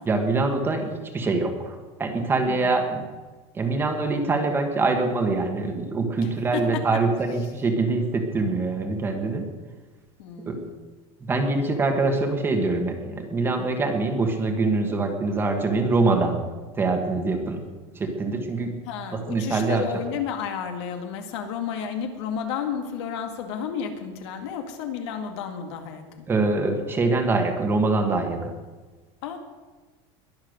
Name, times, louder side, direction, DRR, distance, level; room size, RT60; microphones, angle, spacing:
voice 1, 0.0-3.0 3.5-9.5 10.5-10.6 11.2-16.4 16.7-17.6 17.9-18.8 19.1-19.8 26.3-28.5, right 3 dB, 15° right, 4 dB, 1.6 m, -24 dB
voice 2, 2.5-2.8 6.2-6.8 10.2-10.8 18.9-26.3 29.2-29.4, left 7 dB, 70° left, 5 dB, 2.2 m, -32 dB
21.5 x 7.3 x 6.6 m, 1.3 s
supercardioid pair, 170°, 15 cm